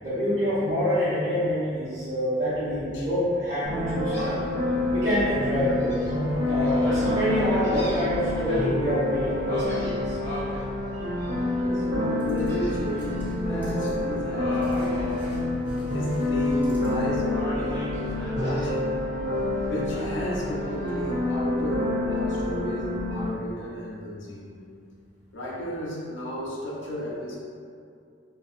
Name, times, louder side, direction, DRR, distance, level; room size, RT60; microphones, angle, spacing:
voice 1, 0.0-4.4 4.9-6.0 6.4-10.2, equal, 80° right, -17 dB, 1.0 m, -26 dB
sound 1, 3.6-23.2, left 2 dB, 55° right, 0.9 m, -27 dB
Gull seagull, 4.1-4.5 5.0-5.1 5.6-8.6 9.5-10.6 11.2-11.6 12.5-13.2 13.5-13.8 14.3-15.9 16.2-16.9 17.3-18.7 19.9-20.9, equal, 35° left, 0.9 m, -38 dB
voice 2, 11.6-15.2 15.9-18.9 19.7-24.6 25.3-27.4, equal, 80° left, -5 dB, 0.4 m, -34 dB
sound 2, 12.0-17.4, equal, 10° right, 0.6 m, -41 dB
2.5 x 2.5 x 2.4 m, 2.4 s
head